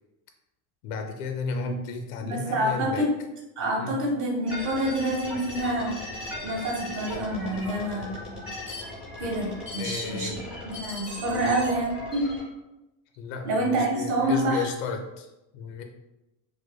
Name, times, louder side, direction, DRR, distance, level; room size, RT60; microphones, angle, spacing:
voice 1, 0.8-3.1 3.8-3.9 9.8-10.4 13.2-15.3 15.5-15.8, left 4 dB, 60° left, 5 dB, 0.5 m, -33 dB
voice 2, 2.2-3.1 3.6-8.1 9.2-10.4 10.6-12.3 13.4-14.7, right 1 dB, 40° right, -2 dB, 0.8 m, -27 dB
sound 1, 4.5-12.4, left 2 dB, 5° right, 0.4 m, -38 dB
4.8 x 2.1 x 2.2 m, 0.97 s
cardioid pair, 160°, 49 cm